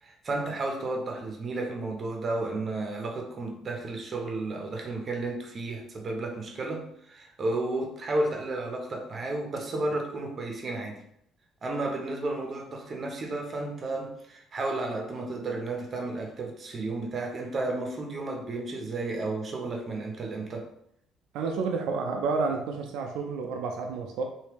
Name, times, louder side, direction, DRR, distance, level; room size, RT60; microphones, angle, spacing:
voice 1, 0.0-11.0 11.6-20.7, right 2 dB, 35° right, 0.7 m, -32 dB
voice 2, 21.3-24.2, right 4 dB, 85° right, 0.5 m, -30 dB
3.3 x 2.7 x 3.0 m
cardioid pair, 125°, 0 cm